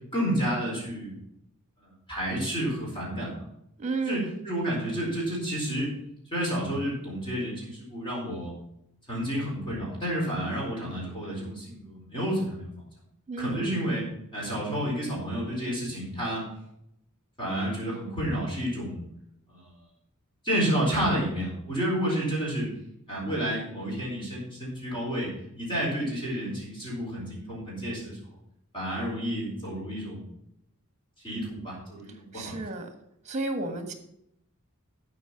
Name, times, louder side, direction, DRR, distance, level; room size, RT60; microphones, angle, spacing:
voice 1, 0.1-1.2 1.8-3.4 4.0-4.2 4.4-5.9 6.3-8.5 9.1-12.9 13.4-14.0 14.3-16.4 17.4-19.0 19.5-19.7 20.4-22.7 23.1-28.2 28.7-30.3 31.2-32.6, equal, 25° left, -4 dB, 4.3 m, -30 dB
voice 2, 3.8-4.4 13.3-13.7 32.3-32.9 33.2-33.9, right 3 dB, 30° right, 7 dB, 1.5 m, -32 dB
12.5 x 5.3 x 5.8 m, 0.77 s
head